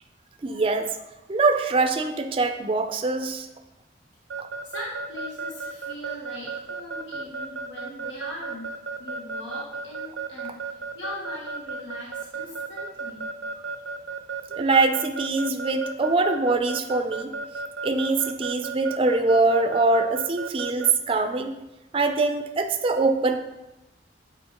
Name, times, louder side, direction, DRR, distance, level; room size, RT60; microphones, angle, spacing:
voice 1, 0.4-0.9 1.3-3.5 4.4-4.5 14.5-17.3 17.8-21.5 21.9-23.4, right 3 dB, 30° right, 6 dB, 0.4 m, -23 dB
Keyboard (musical) / Alarm, 4.3-20.9, right 5 dB, 85° right, 0.5 m, -33 dB
voice 2, 4.6-8.7 9.0-13.2, left 1 dB, 90° left, -4 dB, 1.3 m, -40 dB
8.4 x 4.4 x 2.9 m, 0.96 s
head